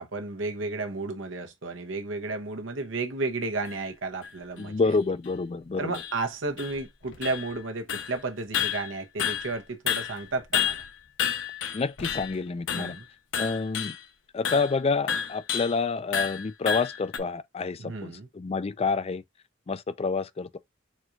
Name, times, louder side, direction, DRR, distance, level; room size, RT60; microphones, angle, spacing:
voice 1, 0.0-5.0 5.8-10.8 12.7-13.1 17.8-18.3, right 3 dB, 80° right, 0.9 m, -33 dB
sound 1, 3.6-3.7 4.2-4.3 4.9-5.0 5.2-5.3 5.9-6.2 6.6-7.6 7.9-8.2 8.5-9.6 9.9-12.4 12.7-13.0 13.3-14.0 14.4-14.7 15.1-15.8 16.1-17.2, left 8 dB, 75° left, 0.8 m, -30 dB
voice 2, 4.6-5.9 11.7-13.0 13.4-13.9 14.3-19.2 19.7-20.6, left 4 dB, 30° left, 0.4 m, -28 dB
4.3 x 2.5 x 4.5 m
head